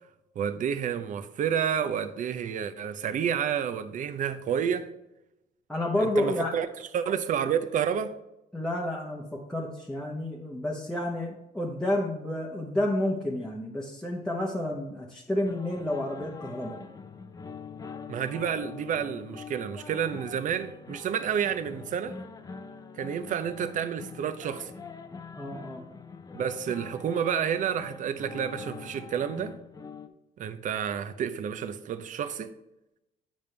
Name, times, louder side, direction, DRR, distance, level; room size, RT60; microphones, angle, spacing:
voice 1, 0.4-4.9 6.0-6.7 6.9-8.1 18.1-22.2 23.0-24.7 26.3-29.5 30.4-32.5, right 8 dB, 50° right, 0.6 m, -30 dB
voice 2, 5.7-6.5 8.5-16.8 25.3-25.8, left 1 dB, 5° left, 0.9 m, -30 dB
sound 1, 15.4-30.1, left 5 dB, 20° left, 0.5 m, -44 dB
8.9 x 5.2 x 3.3 m
cardioid pair, 110°, 17 cm